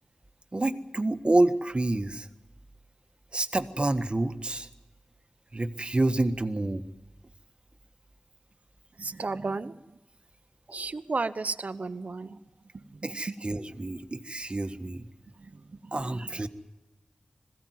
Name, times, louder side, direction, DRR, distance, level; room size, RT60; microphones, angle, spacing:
voice 1, 0.5-2.3 3.3-4.7 5.5-6.8 13.0-15.1 15.9-16.5, right 2 dB, 40° right, 9 dB, 1.4 m, -28 dB
voice 2, 9.0-9.9 10.7-12.4 12.7-13.3 15.4-16.2, right 3 dB, 60° right, 12 dB, 0.9 m, -34 dB
21.0 x 16.0 x 9.5 m, 1.0 s
cardioid pair, 40°, 3 cm